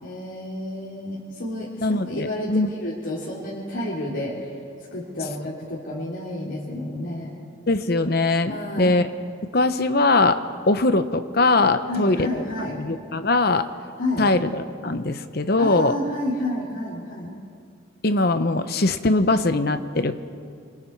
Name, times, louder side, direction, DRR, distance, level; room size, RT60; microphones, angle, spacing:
voice 1, 0.0-4.5 4.9-7.3 8.5-8.9 11.9-12.8 14.0-14.3 15.6-17.3, left 1 dB, 65° left, -7 dB, 3.3 m, -30 dB
voice 2, 1.8-2.7 7.7-9.1 9.5-12.3 12.8-13.7 14.2-15.9 18.0-20.1, left 2 dB, 50° left, 10 dB, 0.9 m, -21 dB
28.0 x 24.5 x 4.7 m, 2.3 s
head